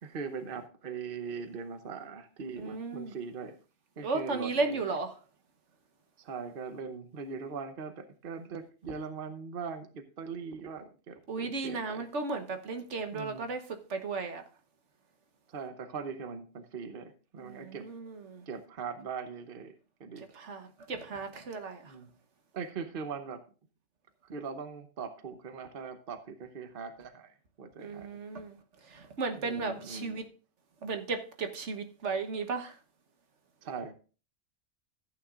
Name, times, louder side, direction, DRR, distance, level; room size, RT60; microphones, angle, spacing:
voice 1, 0.0-3.6 4.0-4.8 6.2-12.0 13.1-13.5 15.5-17.9 18.5-20.3 21.8-22.1 22.5-23.5 24.2-28.1 29.4-30.2 33.6-33.9, right 5 dB, 50° right, 1.0 m, -41 dB
voice 2, 2.6-3.1 4.0-5.1 11.3-13.6 13.9-14.4 17.4-18.4 20.3-21.9 27.8-28.6 28.8-30.2 30.8-32.8, right 4 dB, 70° right, 1.4 m, -35 dB
14.5 x 9.3 x 2.4 m
omnidirectional pair, 1.2 m